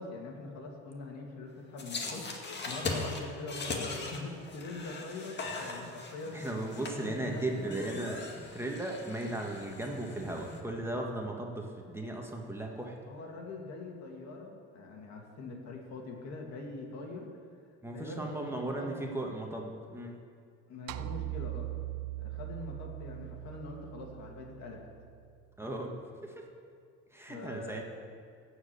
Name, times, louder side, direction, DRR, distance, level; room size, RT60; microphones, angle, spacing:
voice 1, 0.0-2.3 2.7-6.4 6.9-8.1 13.1-17.3 17.9-19.0 20.7-21.7 22.2-24.9 27.3-27.8, left 3 dB, 65° left, 1 dB, 2.3 m, -43 dB
sound 1, 1.8-10.6, left 3 dB, 35° left, 2.0 m, -40 dB
voice 2, 6.3-8.3 8.5-13.0 17.8-20.2 25.6-25.9 26.2-26.5 27.1-27.8, right 1 dB, 10° right, 0 dB, 1.6 m, -36 dB
sound 2, 20.9-25.3, right 17 dB, 85° right, 0.6 m, -40 dB
14.5 x 5.0 x 8.4 m, 2.2 s
supercardioid pair, 90°, 29 cm